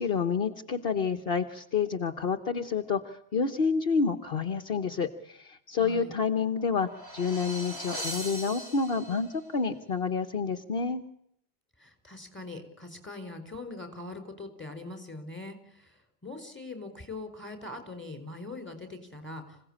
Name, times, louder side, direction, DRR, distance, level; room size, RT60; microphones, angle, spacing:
voice 1, 0.0-11.0, left 5 dB, 60° left, 7 dB, 1.3 m, -29 dB
voice 2, 5.8-6.1 11.8-19.6, left 2 dB, 10° left, 6 dB, 4.6 m, -42 dB
sound 1, 6.5-9.4, right 1 dB, 70° right, 6.7 m, -40 dB
26.5 x 17.0 x 8.7 m, 0.74 s
omnidirectional pair, 1.1 m